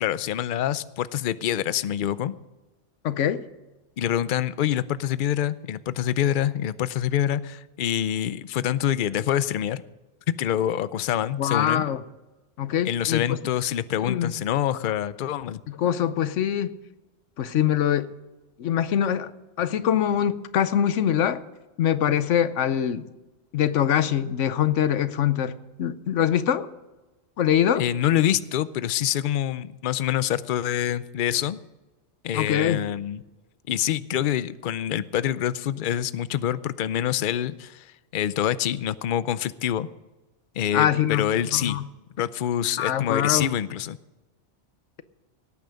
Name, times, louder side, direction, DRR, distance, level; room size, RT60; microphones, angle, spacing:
voice 1, 0.0-2.3 4.0-9.8 10.3-11.8 12.8-15.6 27.8-31.6 32.2-33.2 33.7-39.9 40.6-41.8 42.2-44.0, left 10 dB, 55° left, 16 dB, 0.6 m, -26 dB
voice 2, 3.0-3.4 11.4-12.0 12.6-13.4 14.0-14.3 15.7-16.8 17.4-18.1 18.6-19.3 19.6-21.4 21.8-23.1 23.5-26.7 27.4-27.8 32.3-32.8 40.7-41.3 41.5-41.8 42.8-43.5, left 10 dB, 90° left, 14 dB, 1.1 m, -23 dB
18.0 x 9.1 x 5.2 m, 1.1 s
omnidirectional pair, 1.2 m